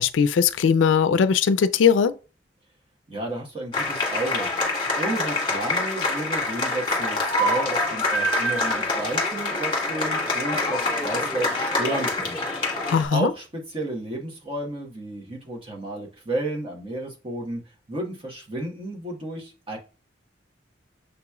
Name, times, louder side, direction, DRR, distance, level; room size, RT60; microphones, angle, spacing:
voice 1, 0.0-2.1 12.9-13.3, left 6 dB, 90° left, 0.4 m, -19 dB
voice 2, 3.1-4.5 5.0-12.8 13.1-17.6 17.9-19.8, right 1 dB, 30° right, 1.0 m, -32 dB
sound 1, 3.7-13.0, left 2 dB, 25° left, 1.4 m, -25 dB
6.6 x 3.0 x 2.3 m
head